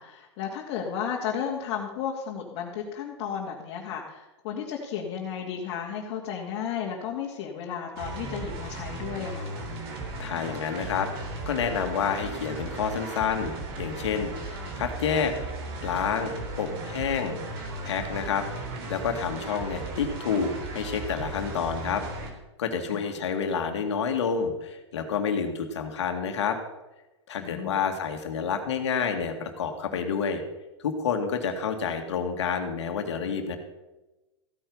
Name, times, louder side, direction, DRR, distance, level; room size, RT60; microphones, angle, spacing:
voice 1, 0.0-9.6 22.9-23.1 27.4-27.8, left 8 dB, 50° left, -2 dB, 2.2 m, -33 dB
sound 1, 8.0-22.3, right 2 dB, 55° right, 3.4 m, -36 dB
voice 2, 10.2-11.1 11.5-15.3 15.8-17.3 17.8-22.0 22.6-26.6 27.3-30.4 30.8-33.6, left 6 dB, 75° left, 5 dB, 2.1 m, -29 dB
15.0 x 9.1 x 5.5 m, 1.1 s
hypercardioid pair, 110°, 15 cm